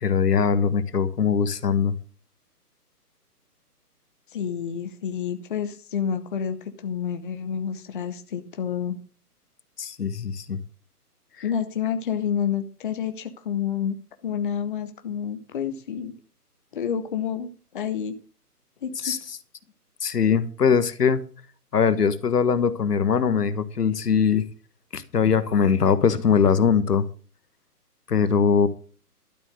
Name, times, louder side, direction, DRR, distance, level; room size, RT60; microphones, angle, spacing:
voice 1, 0.0-1.9 9.8-10.6 19.0-19.2 20.0-21.2 21.7-24.4 24.9-27.1 28.1-28.7, left 6 dB, 75° left, 1.5 m, -21 dB
voice 2, 4.3-9.0 11.4-14.0 14.2-16.2 16.7-18.2 18.8-19.2, left 8 dB, 35° left, 0.9 m, -29 dB
12.5 x 7.3 x 6.5 m
hypercardioid pair, 155°, 47 cm